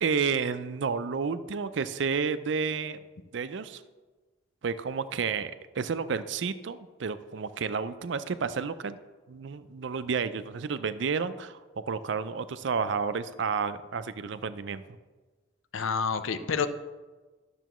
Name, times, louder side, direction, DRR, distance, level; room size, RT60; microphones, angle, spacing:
voice 1, 0.0-3.0 3.3-3.8 4.6-9.0 9.3-11.6 11.9-14.8, right 5 dB, 65° right, 13 dB, 0.4 m, -31 dB
voice 2, 15.7-16.7, left 5 dB, 85° left, 11 dB, 0.6 m, -28 dB
12.0 x 6.8 x 3.0 m, 1.3 s
head